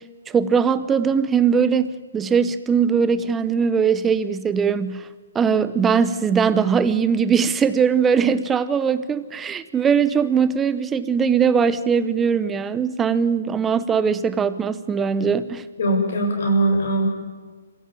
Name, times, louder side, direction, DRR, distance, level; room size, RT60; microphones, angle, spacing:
voice 1, 0.3-5.1 5.3-15.6, right 6 dB, 10° right, 14 dB, 0.8 m, -20 dB
voice 2, 15.8-17.1, right 1 dB, 60° left, 2 dB, 7.4 m, -20 dB
26.0 x 16.5 x 8.9 m, 1.4 s
hypercardioid pair, 160°, 0 cm